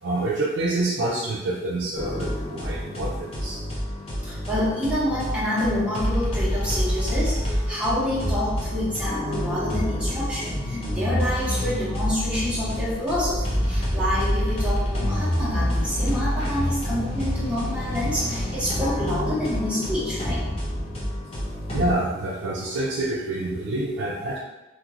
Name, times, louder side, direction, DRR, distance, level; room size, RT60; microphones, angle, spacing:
voice 1, 0.0-3.6 21.6-24.4, right 2 dB, 75° right, -4 dB, 0.4 m, -27 dB
sound 1, 2.0-21.9, equal, 30° left, 0.7 m, -27 dB
voice 2, 4.2-20.4, left 1 dB, 5° right, -8 dB, 0.9 m, -28 dB
2.8 x 2.4 x 2.9 m, 1.1 s
head